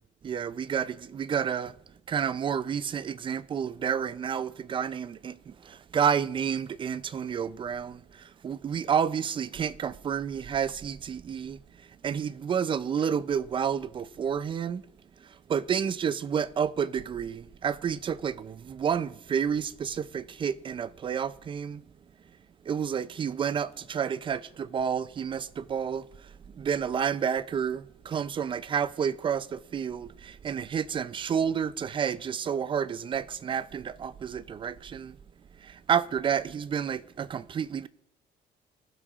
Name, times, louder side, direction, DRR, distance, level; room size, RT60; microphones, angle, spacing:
voice 1, 0.2-1.8 2.1-14.8 15.2-21.8 22.6-35.2 35.6-37.9, right 7 dB, 30° right, 0.4 m, -30 dB
17.5 x 6.1 x 2.4 m
cardioid pair, 110°, 17 cm